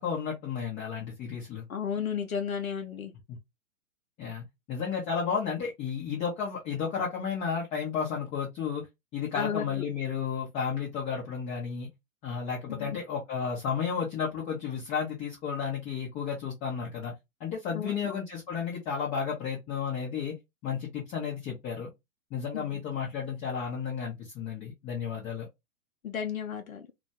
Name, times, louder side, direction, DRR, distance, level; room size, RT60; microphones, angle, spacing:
voice 1, 0.0-1.6 4.2-8.9 9.1-11.9 12.2-17.1 17.4-20.4 20.6-21.9 22.3-25.5, left 6 dB, 15° left, 0.6 m, -32 dB
voice 2, 1.7-3.1 9.4-9.8 12.7-13.0 17.7-18.1 22.5-22.8 26.0-26.9, left 7 dB, 90° left, 0.5 m, -33 dB
2.2 x 2.1 x 2.8 m
figure-of-eight pair, 110°, 40 cm